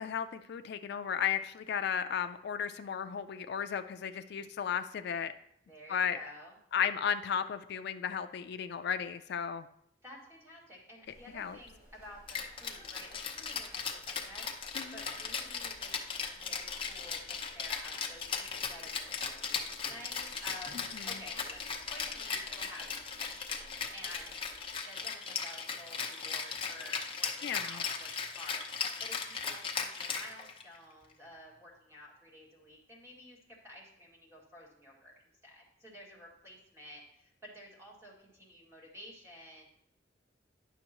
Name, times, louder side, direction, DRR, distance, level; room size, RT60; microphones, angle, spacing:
voice 1, 0.0-5.3 5.9-6.2 6.7-9.7 11.3-11.6 14.8-14.9 21.0-21.2 27.4-27.6, left 8 dB, 60° left, 10 dB, 0.3 m, -34 dB
voice 2, 5.7-6.6 10.0-15.9 16.3-19.1 19.4-22.9 23.2-24.3 24.8-39.7, left 1 dB, 15° right, -4 dB, 2.1 m, -52 dB
sound 1, 11.0-24.8, equal, 45° right, 3.2 m, -58 dB
Rattle (instrument), 12.3-30.8, left 6 dB, 30° left, 0.8 m, -37 dB
10.0 x 6.2 x 2.9 m, 0.73 s
head